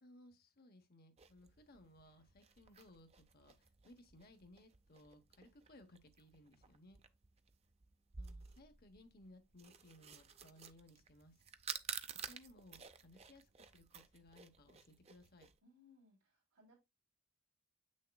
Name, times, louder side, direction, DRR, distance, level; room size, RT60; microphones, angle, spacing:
voice 1, 0.0-3.5 3.8-7.0 8.2-11.4 12.3-15.5, left 1 dB, 45° left, 1.0 m, -62 dB
sound 1, 1.2-15.6, right 7 dB, 30° right, 0.5 m, -52 dB
voice 2, 15.6-16.7, left 2 dB, 75° right, 3.3 m, -67 dB
7.9 x 6.4 x 2.3 m
head